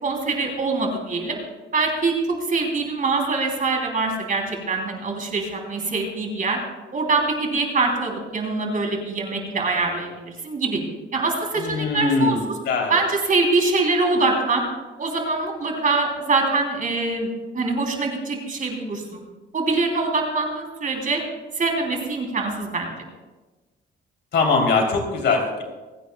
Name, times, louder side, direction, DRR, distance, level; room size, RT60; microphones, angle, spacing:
voice 1, 0.0-1.4 1.7-6.6 6.9-10.8 11.1-12.4 12.9-14.6 15.0-19.2 19.5-21.2 21.5-22.9, right 3 dB, 40° right, 1 dB, 3.1 m, -24 dB
voice 2, 11.6-13.0 24.3-25.6, left 4 dB, 65° left, 1 dB, 3.2 m, -21 dB
27.0 x 9.1 x 2.3 m, 1.2 s
cardioid pair, 90°, 20 cm